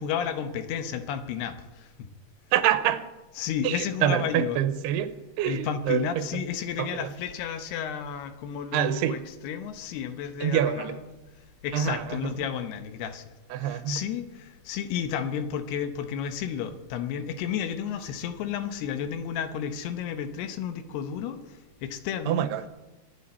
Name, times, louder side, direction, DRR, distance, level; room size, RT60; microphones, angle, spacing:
voice 1, 0.0-1.9 3.4-4.6 5.5-11.2 11.6-13.2 13.6-22.5, left 8 dB, 80° left, 9 dB, 3.0 m, -32 dB
voice 2, 2.5-3.1 3.6-6.5 6.8-7.1 8.7-9.2 10.4-11.0 11.7-12.3 13.5-14.0 22.3-22.7, right 10 dB, 85° right, 12 dB, 2.8 m, -26 dB
23.0 x 10.0 x 4.3 m, 1.1 s
omnidirectional pair, 4.6 m